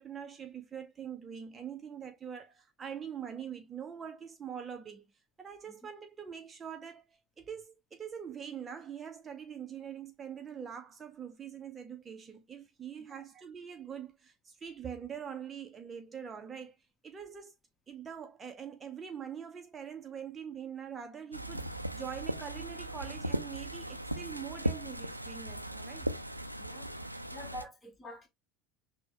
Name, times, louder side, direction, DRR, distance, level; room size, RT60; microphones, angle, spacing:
voice 1, 0.0-5.1 5.4-17.5 17.9-26.1 27.0-27.1, right 8 dB, 25° right, 0.6 m, -44 dB
sound 1, 21.3-27.6, right 1 dB, 90° right, 0.4 m, -37 dB
voice 2, 26.6-26.9 27.3-28.3, left 1 dB, 20° left, 1.2 m, -47 dB
6.1 x 2.1 x 2.7 m
figure-of-eight pair, 70°, 0 cm